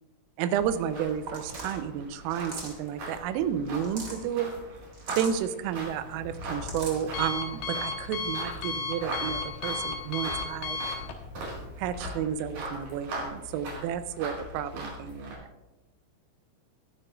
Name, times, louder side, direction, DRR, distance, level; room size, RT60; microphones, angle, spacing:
voice 1, 0.4-4.5 5.2-10.8 11.8-15.4, right 9 dB, 85° right, 10 dB, 3.3 m, -31 dB
sound 1, 0.5-15.3, right 2 dB, 55° right, 6.6 m, -41 dB
sound 2, 1.3-1.8 2.3-2.9 3.7-4.2 4.9-5.4 6.3-7.0, right 3 dB, 30° right, 1.9 m, -40 dB
Alarm, 5.7-12.1, left 4 dB, 80° left, 1.9 m, -36 dB
22.0 x 10.5 x 2.4 m, 1.0 s
omnidirectional pair, 5.9 m